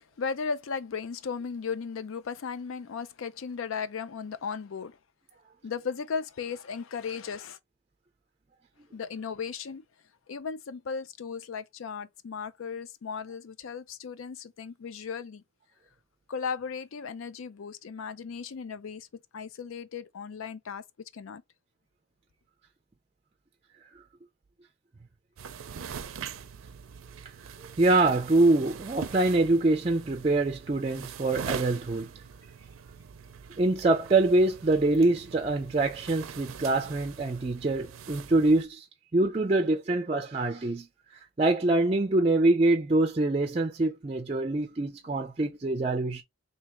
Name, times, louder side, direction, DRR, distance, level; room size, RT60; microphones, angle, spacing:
voice 1, 0.0-5.0 5.6-7.6 8.9-9.8 10.3-15.4 16.3-19.1 19.3-20.8 21.1-21.4, left 5 dB, 75° left, 0.4 m, -36 dB
sound 1, 25.4-38.6, right 6 dB, 80° right, 0.5 m, -43 dB
voice 2, 27.8-32.1 33.6-38.8 39.1-40.9 41.4-46.2, right 2 dB, 30° right, 0.4 m, -24 dB
3.5 x 2.8 x 2.9 m
head